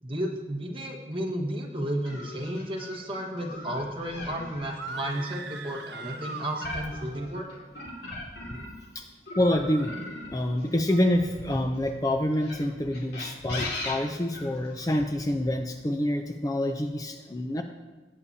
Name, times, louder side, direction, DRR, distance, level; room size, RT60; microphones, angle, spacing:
voice 1, 0.0-7.4, right 1 dB, 30° right, 0 dB, 1.5 m, -33 dB
sound 1, 2.0-8.8 9.3-11.6 12.3-15.0, left 2 dB, 65° left, 2.3 m, -39 dB
sound 2, 4.7-7.3, right 4 dB, 70° right, 0.8 m, -40 dB
voice 2, 9.4-9.9 10.3-17.6, left 1 dB, 20° left, 5 dB, 0.6 m, -27 dB
18.0 x 8.8 x 2.8 m, 1.3 s
head